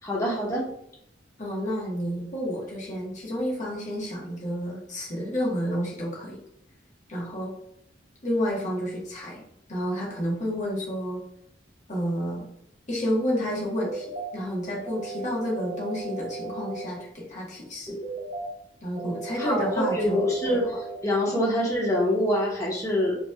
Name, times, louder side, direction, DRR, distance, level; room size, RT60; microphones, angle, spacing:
voice 1, 0.0-0.7 19.4-20.7 21.0-23.2, equal, 20° left, -3 dB, 1.1 m, -25 dB
voice 2, 1.4-6.4 7.1-7.5 8.2-9.4 9.7-11.2 11.9-12.5 12.9-18.0 18.8-20.7 21.3-21.4, equal, 40° left, -4 dB, 1.4 m, -30 dB
sound 1, 13.7-14.3 14.9-16.9 17.9-18.5 19.0-21.0, right 3 dB, 40° right, 1.2 m, -36 dB
5.1 x 3.1 x 2.3 m, 0.74 s
head